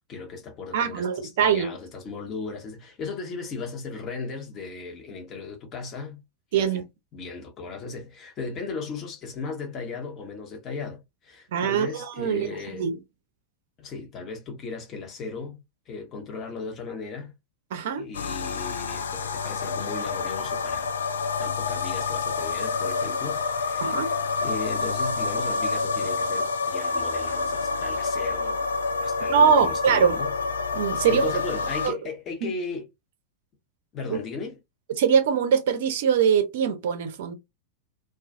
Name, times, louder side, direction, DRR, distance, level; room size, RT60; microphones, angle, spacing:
voice 1, 0.1-6.2 6.5-6.8 7.1-12.9 13.8-17.3 18.0-21.0 21.4-28.7 29.0-30.3 31.1-32.9 33.9-34.6, left 4 dB, 30° left, 0.9 m, -36 dB
voice 2, 0.7-1.8 6.5-6.8 11.5-13.0 17.7-18.1 23.8-24.1 29.3-30.2 30.7-31.3 31.8-32.0 32.4-32.5 34.1-34.2 35.0-37.4, right 7 dB, 55° right, 0.5 m, -22 dB
sound 1, 18.1-31.9, left 4 dB, 70° left, 0.3 m, -28 dB
2.3 x 2.3 x 2.6 m
figure-of-eight pair, 90°, 0 cm